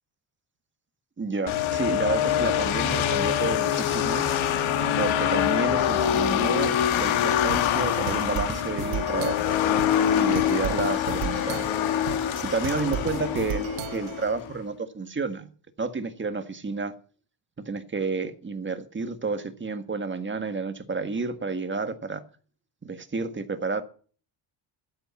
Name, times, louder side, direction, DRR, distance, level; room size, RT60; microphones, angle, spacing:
voice 1, 1.2-4.3 5.0-9.6 10.2-11.7 12.4-15.5 15.8-16.9 17.7-22.2 22.8-23.8, right 4 dB, 25° right, 1.7 m, -30 dB
sound 1, 1.5-14.5, left 10 dB, 80° left, 1.7 m, -25 dB
sound 2, 7.5-14.3, right 11 dB, 90° right, 1.4 m, -36 dB
12.0 x 8.7 x 7.1 m
cardioid pair, 95°, 48 cm